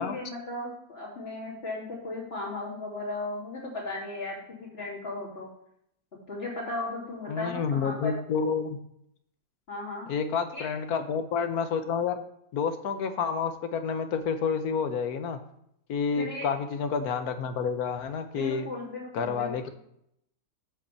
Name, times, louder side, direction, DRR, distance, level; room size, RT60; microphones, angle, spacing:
voice 1, 0.0-4.3 4.6-5.5 6.3-8.1 9.7-10.1 10.5-10.7 16.2-16.5 18.4-19.6, left 2 dB, 40° left, -5 dB, 3.4 m, -36 dB
voice 2, 7.3-8.8 10.1-12.2 12.5-15.4 15.9-18.7 19.1-19.7, left 6 dB, 70° left, 8 dB, 1.3 m, -29 dB
7.7 x 5.3 x 6.9 m, 0.74 s
omnidirectional pair, 1.7 m